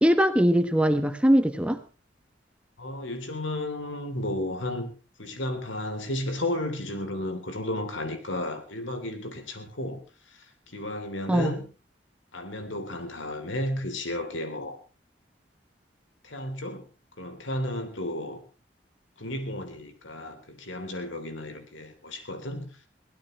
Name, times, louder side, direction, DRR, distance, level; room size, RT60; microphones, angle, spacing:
voice 1, 0.0-1.8 11.3-11.5, equal, 5° right, 9 dB, 1.2 m, -21 dB
voice 2, 2.8-4.9 5.2-10.0 10.3-11.7 12.3-14.8 16.2-16.8 17.2-18.4 19.2-22.7, left 1 dB, 85° left, 7 dB, 3.4 m, -33 dB
23.0 x 16.5 x 3.2 m, 0.32 s
head